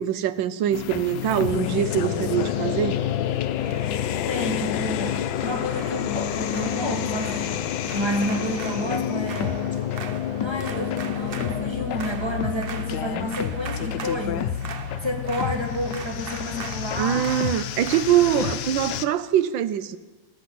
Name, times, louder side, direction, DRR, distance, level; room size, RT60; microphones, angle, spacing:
voice 1, 0.0-3.0 17.0-20.0, right 11 dB, 80° right, 1.4 m, -23 dB
sound 1, 0.7-19.1, left 10 dB, 70° left, 1.2 m, -31 dB
sound 2, 1.0-14.4, left 10 dB, 85° left, 1.5 m, -31 dB
sound 3, 1.5-18.3, right 6 dB, 60° right, 0.6 m, -41 dB
voice 2, 4.3-7.7 7.9-9.6 10.4-14.5 15.0-17.3 18.3-18.6, equal, 15° right, 1.6 m, -30 dB
16.0 x 14.0 x 5.9 m
omnidirectional pair, 2.1 m